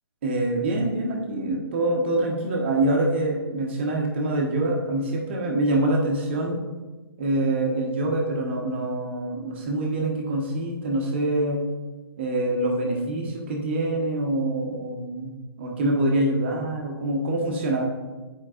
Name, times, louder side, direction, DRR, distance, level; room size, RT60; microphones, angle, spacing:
voice 1, 0.2-6.6 7.2-11.6 12.2-17.8, right 1 dB, 25° right, 0 dB, 0.9 m, -25 dB
10.0 x 4.7 x 2.4 m, 1.3 s
hypercardioid pair, 170°, 14 cm